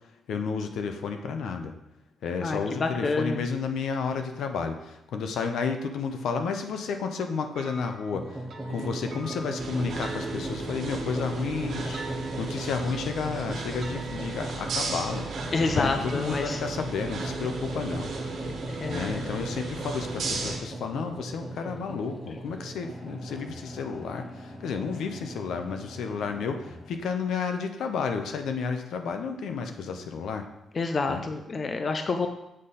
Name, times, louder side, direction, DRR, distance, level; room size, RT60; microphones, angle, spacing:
voice 1, 0.3-1.7 2.2-8.4 8.7-15.3 15.7-18.1 18.9-30.5 31.1-31.2, left 5 dB, 70° left, 6 dB, 0.7 m, -32 dB
voice 2, 2.4-3.4 15.5-16.6 18.7-19.4 30.8-32.3, left 3 dB, 30° left, 6 dB, 0.4 m, -28 dB
sound 1, 7.6-16.5, right 2 dB, 45° right, 1.4 m, -46 dB
sound 2, 8.1-27.0, right 1 dB, 5° left, 1.0 m, -38 dB
sound 3, 9.6-20.6, right 3 dB, 60° right, 1.4 m, -36 dB
7.6 x 5.0 x 4.2 m, 0.90 s
wide cardioid pair, 170°, 0 cm